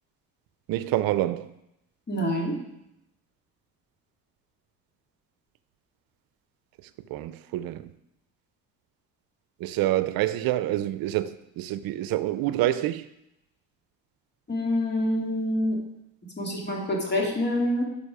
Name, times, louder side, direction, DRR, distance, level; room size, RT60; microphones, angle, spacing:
voice 1, 0.7-1.5 7.1-7.9 9.6-13.1, right 14 dB, 75° right, 0.6 m, -27 dB
voice 2, 2.1-2.6 14.5-15.8 16.4-17.8, left 1 dB, 30° left, 2.6 m, -26 dB
12.0 x 5.3 x 4.9 m
cardioid pair, 95°, 35 cm